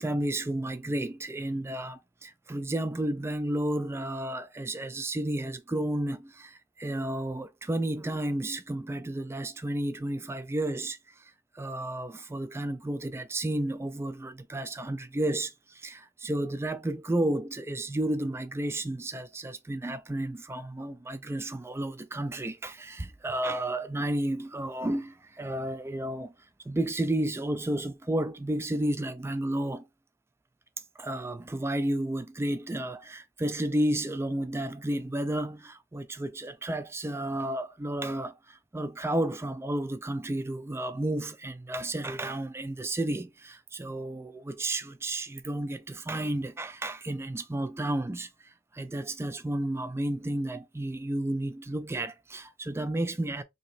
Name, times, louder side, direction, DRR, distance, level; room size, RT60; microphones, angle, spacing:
voice 1, 0.0-26.3 26.7-29.8 31.0-53.4, right 1 dB, 10° right, 0.3 m, -32 dB
3.0 x 2.6 x 4.1 m
head